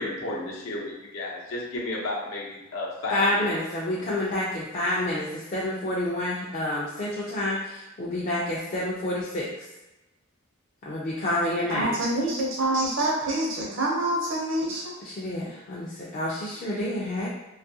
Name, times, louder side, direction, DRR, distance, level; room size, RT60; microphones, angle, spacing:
voice 1, 0.0-3.5, left 2 dB, 85° left, -3 dB, 0.7 m, -32 dB
voice 2, 3.1-9.5 10.9-11.9 15.0-17.3, left 1 dB, 40° left, -6 dB, 0.3 m, -28 dB
voice 3, 11.7-14.9, right 1 dB, 65° right, -3 dB, 0.7 m, -26 dB
2.5 x 2.4 x 2.6 m, 1.0 s
head